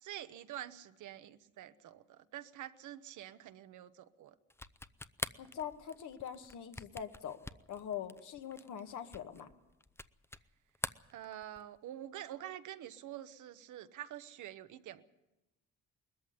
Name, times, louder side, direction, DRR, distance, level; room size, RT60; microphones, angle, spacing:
voice 1, 0.0-4.3 11.1-15.1, right 12 dB, 75° right, 11 dB, 1.2 m, -47 dB
sound 1, 4.5-10.5 10.8-11.8, left 2 dB, 10° left, 0.6 m, -44 dB
voice 2, 5.4-7.4 7.7-9.5, left 9 dB, 75° left, 6 dB, 1.9 m, -43 dB
20.0 x 14.0 x 9.6 m, 0.98 s
cardioid pair, 90°, 30 cm